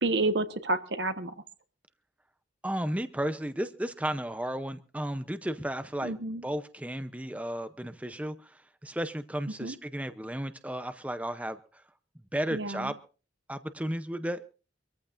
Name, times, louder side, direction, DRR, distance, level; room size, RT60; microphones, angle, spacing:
voice 1, 0.0-1.3 6.0-6.4 9.6-9.7 12.5-12.9, right 2 dB, 70° right, 10 dB, 1.3 m, -29 dB
voice 2, 2.6-6.1 6.4-11.8 12.3-13.0 13.5-14.5, right 1 dB, 5° right, 10 dB, 0.7 m, -34 dB
25.0 x 14.5 x 2.6 m, 0.35 s
head